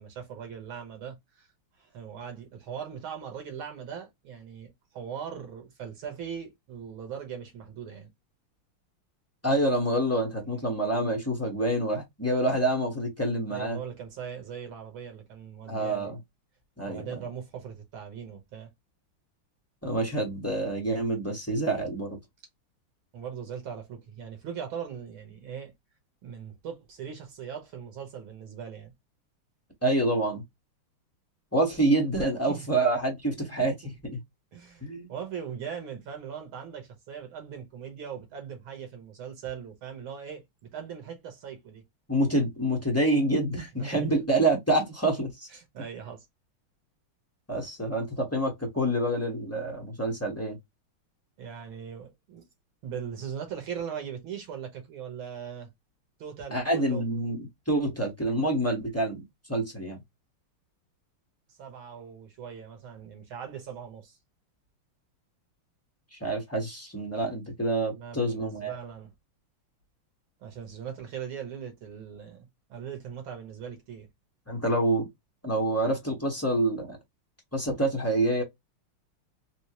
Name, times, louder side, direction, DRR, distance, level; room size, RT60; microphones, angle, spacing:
voice 1, 0.0-1.5 1.8-8.1 10.4-10.7 13.5-16.1 16.8-18.7 23.1-25.7 26.2-28.9 32.5-32.7 34.5-40.4 40.7-41.8 43.8-44.1 45.5-46.3 51.4-52.5 52.8-55.7 56.2-57.0 61.5-64.2 67.9-69.1 70.4-74.1, right 7 dB, 70° right, 1.9 m, -40 dB
voice 2, 9.4-13.8 15.7-16.2 16.8-17.2 19.8-22.2 29.8-30.4 31.5-34.2 34.8-35.1 42.1-45.5 47.5-50.6 56.5-59.2 59.5-60.0 66.1-68.8 74.5-75.1 75.4-77.0 77.5-78.4, right 1 dB, 15° left, 0.5 m, -27 dB
4.4 x 2.0 x 2.8 m
omnidirectional pair, 2.4 m